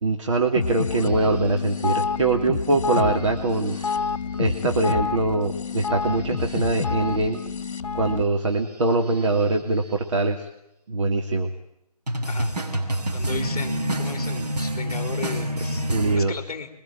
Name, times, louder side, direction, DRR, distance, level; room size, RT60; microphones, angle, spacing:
voice 1, 0.0-3.8 4.4-7.4 7.9-10.5 10.9-11.5 15.9-16.3, right 2 dB, 50° right, 3 dB, 2.9 m, -23 dB
sound 1, 0.6-8.2, left 5 dB, 50° left, 1.8 m, -28 dB
sound 2, 1.0-1.9 3.2-4.1 4.4-4.6 5.9-7.3 8.5-10.0 12.1-16.2, right 1 dB, 75° right, 7.5 m, -29 dB
voice 2, 13.1-16.7, left 5 dB, 15° left, -5 dB, 4.2 m, -36 dB
28.0 x 23.5 x 9.1 m, 0.82 s
figure-of-eight pair, 150°, 21 cm